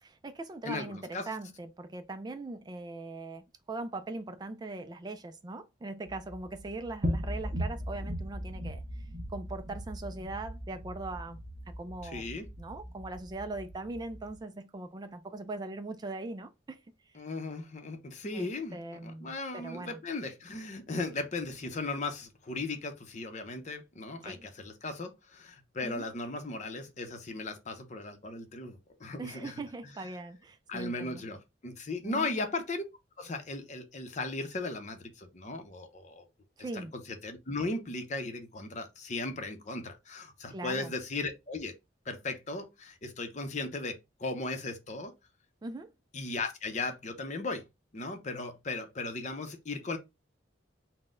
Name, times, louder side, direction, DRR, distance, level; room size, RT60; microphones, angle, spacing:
voice 1, 0.0-11.4 11.8-16.8 17.1-17.2 18.3-20.0 24.2-24.5 25.8-26.1 29.2-31.2 32.0-32.3 36.6-36.9 40.5-40.9 45.6-45.9, right 2 dB, 20° right, 0.3 m, -41 dB
voice 2, 0.6-1.3 12.0-12.4 17.1-29.6 30.7-32.8 33.2-36.3 36.7-41.7 42.1-45.1 46.1-47.6 47.9-50.0, left 3 dB, 40° left, 0.7 m, -37 dB
sound 1, 6.1-14.4, equal, 50° right, 1.3 m, -38 dB
4.0 x 2.1 x 3.6 m
head